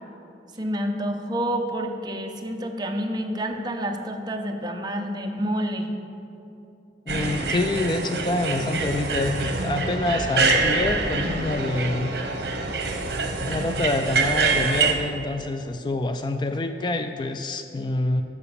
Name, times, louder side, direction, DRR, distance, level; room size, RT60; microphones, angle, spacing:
voice 1, 0.6-5.9, equal, 25° right, 4 dB, 0.7 m, -28 dB
voice 2, 7.1-12.1 13.5-18.2, left 2 dB, 25° left, 8 dB, 0.3 m, -26 dB
sound 1, 7.1-14.9, right 3 dB, 65° right, 1.1 m, -25 dB
13.5 x 4.9 x 6.9 m, 2.8 s
head